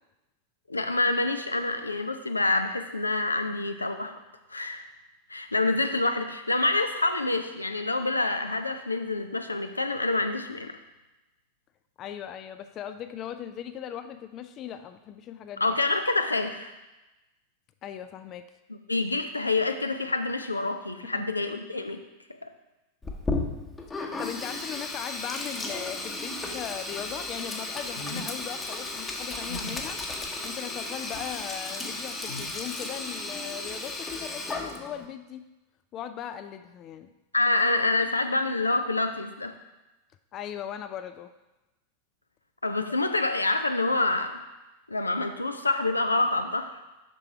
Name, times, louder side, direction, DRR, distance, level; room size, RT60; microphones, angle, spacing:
voice 1, 0.7-4.2 4.5-4.8 5.3-10.8 15.6-16.7 18.9-22.0 22.4-22.5 37.3-39.6 42.6-44.4 44.9-46.7, left 2 dB, 80° left, 7 dB, 0.6 m, -27 dB
voice 2, 12.0-15.6 17.8-18.5 21.0-21.2 24.0-30.0 30.4-35.4 35.9-37.1 40.3-41.3, left 9 dB, 35° left, 9 dB, 0.4 m, -38 dB
Sink (filling or washing), 23.0-35.1, left 2 dB, 15° left, 1.0 m, -34 dB
sound 1, 27.9-28.3 29.4-29.9 30.9-31.3 32.2-32.6, left 1 dB, 65° left, 2.4 m, -40 dB
6.8 x 5.9 x 4.6 m, 1.0 s
figure-of-eight pair, 90°, 0 cm